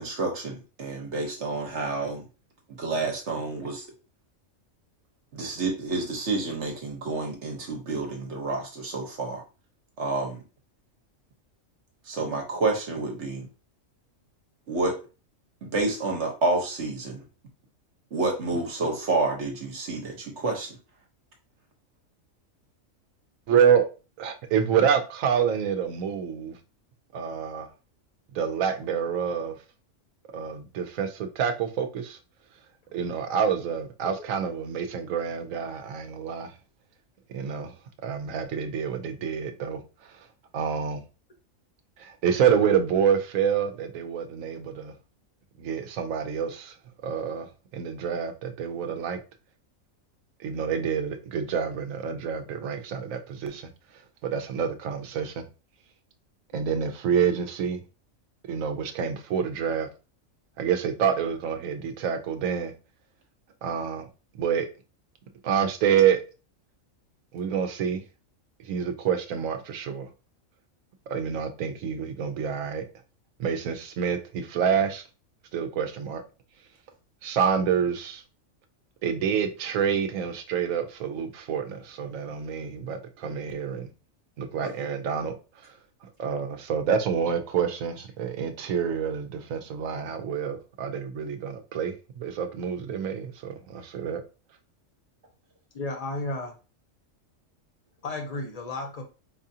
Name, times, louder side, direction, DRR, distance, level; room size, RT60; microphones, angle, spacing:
voice 1, 0.0-2.2 2.7-3.9 5.3-9.4 10.0-10.4 12.1-13.4 14.7-15.0 15.6-17.2 18.1-20.8 84.6-84.7, right 3 dB, 60° right, 1.2 m, -29 dB
voice 2, 23.5-23.9 24.2-26.6 27.1-27.7 28.3-29.6 30.3-32.2 32.9-36.5 37.3-37.7 38.0-39.8 40.1-40.2 40.5-41.0 42.0-44.9 45.6-46.7 47.0-47.5 47.7-49.2 50.4-53.7 54.2-55.4 56.5-57.8 58.5-59.9 60.6-62.7 63.6-64.1 64.4-64.7 65.4-66.2 67.3-68.0 68.6-70.1 71.1-72.8 73.4-75.0 75.5-76.2 77.2-78.2 79.0-83.9 84.4-85.3 85.6-85.7 86.2-94.2, right 7 dB, 85° right, 1.0 m, -27 dB
voice 3, 95.7-96.5 98.0-99.0, left 2 dB, 40° left, 0.7 m, -33 dB
4.7 x 2.4 x 2.7 m
omnidirectional pair, 1.4 m